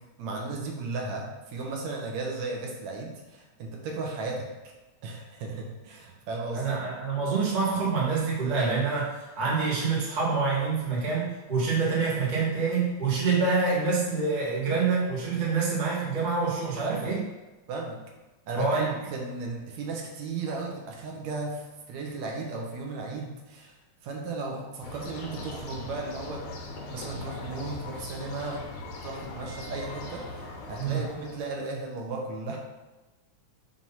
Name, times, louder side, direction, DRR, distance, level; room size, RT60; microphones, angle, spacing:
voice 1, 0.0-4.5 5.0-6.8 16.8-17.1 17.7-18.0 18.5-23.8 24.0-26.5 26.9-28.7 29.0-32.6, right 3 dB, 75° right, 0 dB, 2.0 m, -35 dB
voice 2, 6.5-17.2 18.6-18.9 30.8-31.0, right 4 dB, 30° right, -6 dB, 0.9 m, -26 dB
sound 1, 24.8-31.5, left 2 dB, 85° left, 2.4 m, -40 dB
6.1 x 2.8 x 5.5 m, 1.1 s
omnidirectional pair, 3.4 m